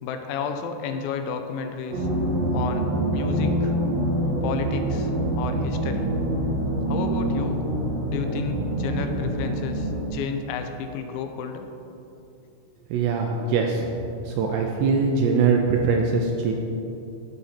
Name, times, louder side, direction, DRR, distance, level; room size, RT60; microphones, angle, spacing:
voice 1, 0.0-2.1 2.5-2.9 3.1-3.8 4.4-5.1 5.4-6.1 6.9-7.6 8.1-11.7, left 6 dB, 90° left, 6 dB, 3.0 m, -32 dB
sound 1, 1.9-10.1, right 1 dB, 55° right, 1.9 m, -25 dB
voice 2, 12.9-14.0 14.3-16.5, right 4 dB, 80° right, 1 dB, 2.4 m, -22 dB
15.5 x 5.2 x 4.3 m, 2.7 s
omnidirectional pair, 5.3 m